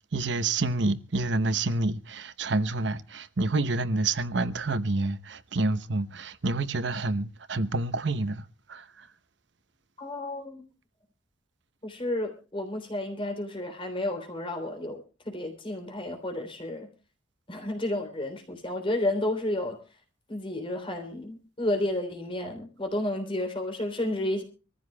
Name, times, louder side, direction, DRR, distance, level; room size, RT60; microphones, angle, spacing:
voice 1, 0.1-9.1, right 2 dB, 65° right, 0.9 m, -28 dB
voice 2, 10.0-10.6 11.8-16.9 17.5-19.8 20.3-24.4, left 1 dB, 25° left, 3.4 m, -31 dB
26.0 x 14.5 x 2.3 m
head